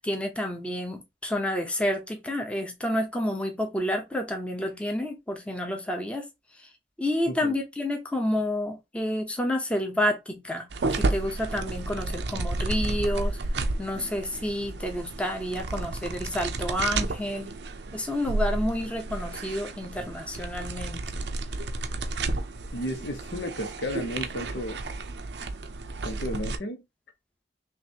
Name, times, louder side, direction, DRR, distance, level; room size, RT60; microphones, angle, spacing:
voice 1, 0.0-6.3 6.5-6.7 7.0-13.4 13.8-17.5 17.9-21.0, left 1 dB, 5° left, 0.7 m, -29 dB
sound 1, 10.7-26.6, right 2 dB, 75° right, 0.6 m, -32 dB
voice 2, 22.7-24.8 26.0-26.8, equal, 80° left, 1.1 m, -33 dB
5.8 x 2.5 x 2.8 m
head